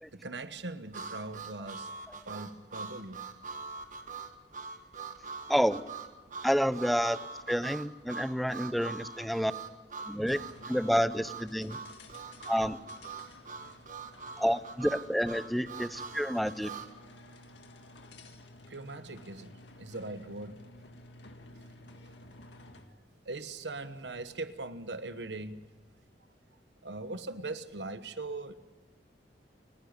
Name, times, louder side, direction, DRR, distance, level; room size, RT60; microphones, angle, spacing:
voice 1, 0.1-1.9 2.3-3.2 17.1-17.4 17.8-17.9 18.7-20.6 23.2-25.7 26.8-28.5, right 2 dB, 75° right, 1.2 m, -40 dB
Harmonica, 0.9-16.9, right 4 dB, 45° right, 1.5 m, -43 dB
voice 2, 5.5-5.8 6.4-7.2 7.5-9.5 10.0-10.4 10.7-11.8 12.5-12.8 14.4-16.7, equal, ahead, 0.6 m, -29 dB
sound 1, 10.2-23.0, left 2 dB, 90° left, 1.8 m, -53 dB
29.5 x 10.0 x 9.6 m
head